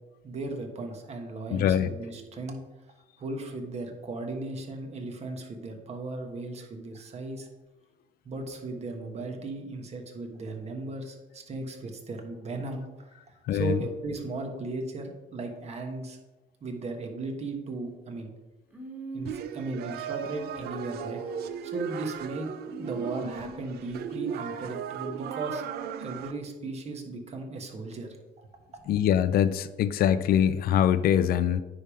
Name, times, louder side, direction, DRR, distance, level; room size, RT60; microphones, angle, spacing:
voice 1, 0.2-2.6 3.2-7.5 8.2-16.2 16.6-18.3 19.1-21.2 21.6-22.5 22.7-25.6 26.0-28.2, right 2 dB, 40° right, 4 dB, 1.3 m, -36 dB
voice 2, 1.5-1.9 13.5-13.8 28.9-31.6, left 9 dB, 65° left, 13 dB, 0.4 m, -23 dB
Human voice, 18.7-19.7 20.2-21.8 22.6-23.9, right 1 dB, 10° right, 1.9 m, -43 dB
sound 1, 19.3-26.3, right 8 dB, 70° right, 0.5 m, -36 dB
9.5 x 3.5 x 5.2 m, 1.1 s
cardioid pair, 110°, 17 cm